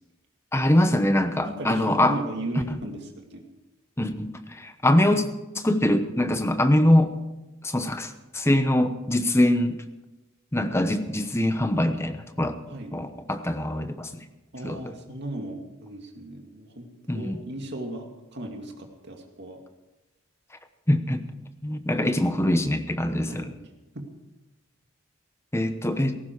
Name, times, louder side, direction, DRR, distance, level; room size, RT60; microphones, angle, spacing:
voice 1, 0.5-2.2 2.7-2.8 4.0-5.2 5.5-7.1 7.6-9.8 10.5-12.6 12.9-14.2 14.6-14.9 17.1-17.4 20.9-21.2 21.6-23.5 25.5-26.2, left 1 dB, 15° left, 9 dB, 0.9 m, -23 dB
voice 2, 1.4-3.4 12.7-12.9 14.5-16.9 17.1-19.6 23.3-23.6, right 1 dB, 55° right, 3 dB, 2.4 m, -36 dB
17.5 x 15.0 x 4.7 m, 1.0 s
head